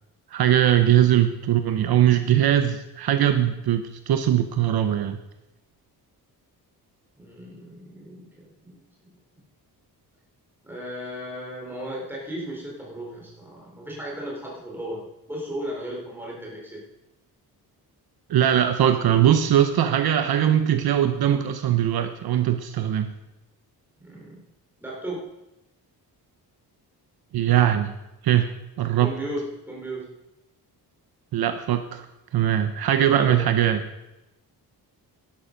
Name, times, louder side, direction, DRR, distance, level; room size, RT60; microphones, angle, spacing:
voice 1, 0.3-5.2 18.3-23.1 27.3-27.9 28.2-28.5 28.8-29.1 31.3-32.1 32.3-33.8, right 11 dB, 65° right, 8 dB, 0.9 m, -21 dB
voice 2, 7.2-9.2 10.6-16.8 24.0-24.4 24.8-25.3 29.0-30.1 33.1-33.4, right 1 dB, 5° right, -4 dB, 4.0 m, -35 dB
12.0 x 12.0 x 5.3 m, 0.92 s
wide cardioid pair, 180°, 40 cm